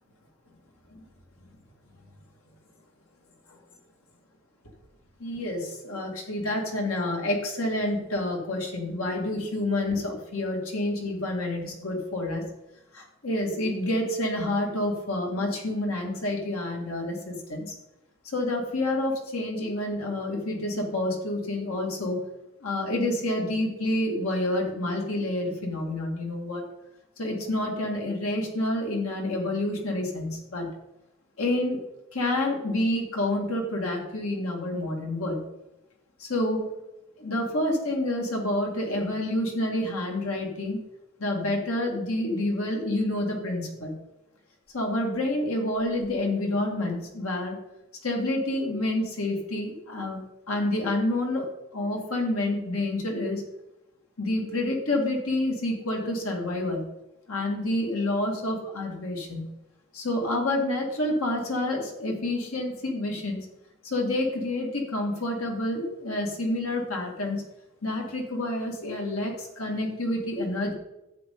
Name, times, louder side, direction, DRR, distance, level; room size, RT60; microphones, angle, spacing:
voice 1, 5.2-12.5 12.9-17.7 18.3-22.2 22.6-26.6 27.2-30.7 31.4-31.8 32.1-35.5 36.2-36.8 37.2-40.8 41.2-43.9 44.7-47.6 48.0-50.2 50.5-51.5 51.7-53.4 54.2-56.9 57.3-59.5 59.9-63.4 63.8-67.4 67.8-70.7, left 1 dB, 90° left, 0 dB, 2.3 m, -28 dB
11.0 x 8.0 x 3.8 m, 0.95 s
head